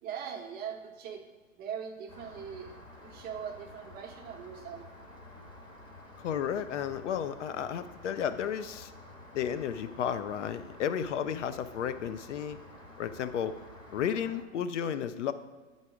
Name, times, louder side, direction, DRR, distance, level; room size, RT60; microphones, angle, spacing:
voice 1, 0.0-1.2 1.5-2.7 3.0-4.9, right 7 dB, 25° right, 3 dB, 0.8 m, -40 dB
Rain, 2.1-14.4, left 1 dB, 10° left, 1.2 m, -50 dB
voice 2, 6.2-8.9 9.3-12.6 13.0-13.6 13.9-15.3, left 8 dB, 65° left, 12 dB, 0.5 m, -33 dB
8.9 x 4.0 x 4.8 m, 1.4 s
hypercardioid pair, 120°, 40 cm